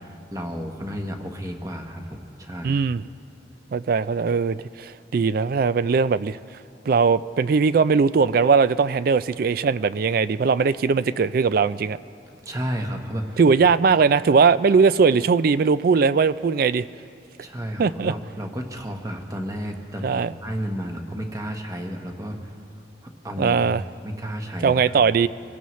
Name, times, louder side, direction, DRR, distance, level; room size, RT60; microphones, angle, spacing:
voice 1, 0.0-2.8 12.4-13.4 17.4-22.5 23.0-23.6 24.0-24.8, equal, 20° right, 3 dB, 1.1 m, -32 dB
voice 2, 2.6-3.0 3.7-6.4 6.9-12.0 13.4-16.9 17.8-18.1 20.0-20.3 23.4-23.8 24.6-25.3, right 5 dB, 50° right, 16 dB, 0.3 m, -20 dB
24.5 x 17.0 x 3.2 m, 2.6 s
head